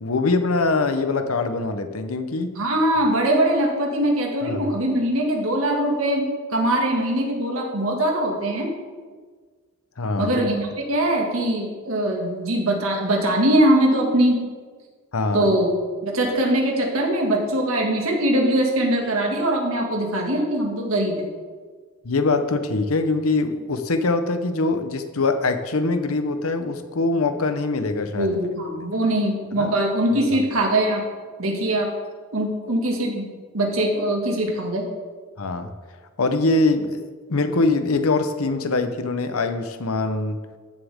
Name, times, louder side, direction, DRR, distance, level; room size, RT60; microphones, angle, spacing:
voice 1, 0.0-2.6 4.4-4.6 10.0-10.4 15.1-15.6 22.0-28.4 29.6-29.8 30.1-30.4 35.4-35.7 36.2-37.0 37.3-40.5, left 3 dB, 80° left, 8 dB, 0.8 m, -23 dB
voice 2, 2.6-8.7 10.2-14.4 15.3-15.7 16.0-21.3 28.1-31.0 31.4-31.9 32.3-33.3 33.5-34.9, right 1 dB, 75° right, 1 dB, 2.0 m, -22 dB
14.5 x 7.3 x 3.6 m, 1.5 s
head